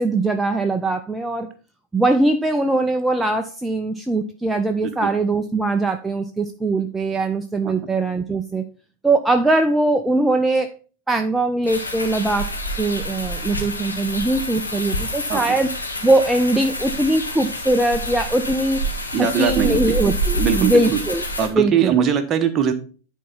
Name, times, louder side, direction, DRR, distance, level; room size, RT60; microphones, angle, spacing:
voice 1, 0.0-1.5 1.9-8.7 9.0-10.7 11.1-12.5 12.8-15.7 16.0-18.8 19.2-21.2 21.6-21.9, right 2 dB, 5° right, 6 dB, 0.5 m, -21 dB
sound 1, 11.7-21.5, equal, 80° left, 1.5 m, -27 dB
voice 2, 19.1-20.0 20.4-21.0 21.4-22.7, right 8 dB, 30° right, 8 dB, 1.0 m, -21 dB
10.0 x 4.5 x 4.0 m, 0.38 s
figure-of-eight pair, 90°, 0 cm